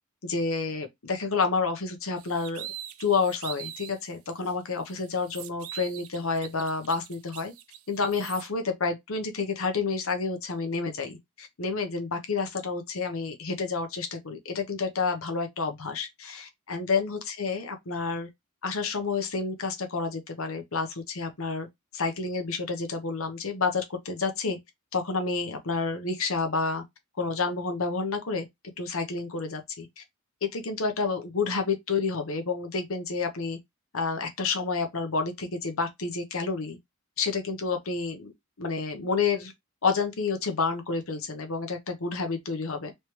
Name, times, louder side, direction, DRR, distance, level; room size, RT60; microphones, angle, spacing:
voice 1, 0.2-2.7 3.0-7.5 7.9-18.3 18.6-21.7 21.9-24.6 24.9-26.8 27.2-28.4 28.8-30.0 30.4-33.6 33.9-36.8 37.2-38.3 38.6-39.5 39.8-42.9, left 4 dB, 70° left, 0.9 m, -29 dB
sound 1, 2.2-4.0 4.4-4.5 4.9-8.5, right 11 dB, 70° right, 0.5 m, -42 dB
3.2 x 3.2 x 2.9 m
head